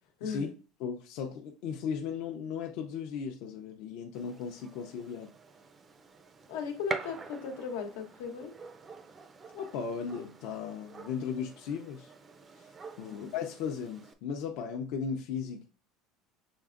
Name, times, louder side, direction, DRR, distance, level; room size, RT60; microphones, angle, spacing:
voice 1, 0.8-5.3 9.5-12.1 13.0-15.7, left 6 dB, 60° left, 1 dB, 0.6 m, -36 dB
Gunshot gunfire, 4.1-14.1, right 4 dB, 20° right, 0.4 m, -46 dB
voice 2, 6.5-8.5 13.1-13.2, left 5 dB, 90° left, 4 dB, 1.0 m, -37 dB
6.2 x 3.3 x 2.5 m, 0.36 s
cardioid pair, 160°, 0 cm